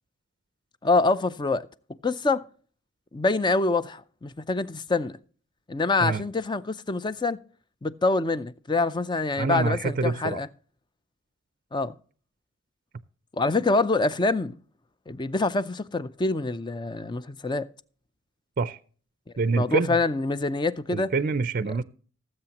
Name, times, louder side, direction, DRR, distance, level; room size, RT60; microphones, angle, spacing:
voice 1, 0.8-1.7 2.0-2.4 3.1-5.2 5.7-7.4 7.8-10.5 11.7-12.0 13.3-14.6 15.1-17.7 19.5-21.1, left 3 dB, 25° left, 0.5 m, -25 dB
voice 2, 9.4-10.4 18.6-18.8 19.4-20.0 20.9-21.8, right 4 dB, 45° right, 0.5 m, -26 dB
19.0 x 7.8 x 2.9 m
head